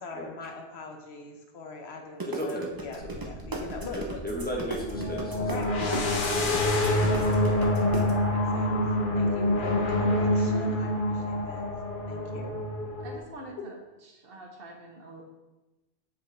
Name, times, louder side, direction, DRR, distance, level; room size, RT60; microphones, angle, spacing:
voice 1, 0.0-4.2 5.4-8.8 9.1-11.6 12.1-12.6, left 3 dB, 80° left, 3 dB, 1.1 m, -41 dB
sound 1, 2.2-8.1, right 3 dB, 25° right, 0.7 m, -36 dB
voice 2, 2.3-2.7 3.0-3.2 3.9-5.5, equal, 10° left, -3 dB, 1.1 m, -34 dB
sound 2, 2.8-2.9 4.9-13.2, left 1 dB, 55° left, 1.0 m, -26 dB
sound 3, 3.0-8.2, right 1 dB, 90° right, 1.3 m, -42 dB
voice 3, 13.0-13.8 14.1-15.2, right 2 dB, 65° right, 2 dB, 1.1 m, -45 dB
7.1 x 5.0 x 3.4 m, 1.1 s
omnidirectional pair, 1.1 m